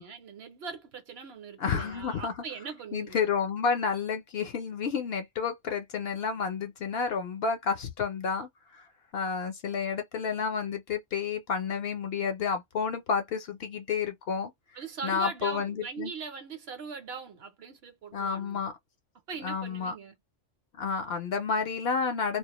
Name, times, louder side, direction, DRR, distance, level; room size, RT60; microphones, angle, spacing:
voice 1, 0.0-3.2 14.7-18.7 19.3-20.1, right 5 dB, 60° right, 0.9 m, -41 dB
voice 2, 1.6-2.3 2.9-8.9 9.1-14.5 15.0-16.1 18.1-18.7 19.4-19.9 20.7-22.4, left 6 dB, 60° left, 0.7 m, -30 dB
2.3 x 2.1 x 2.8 m
omnidirectional pair, 1.3 m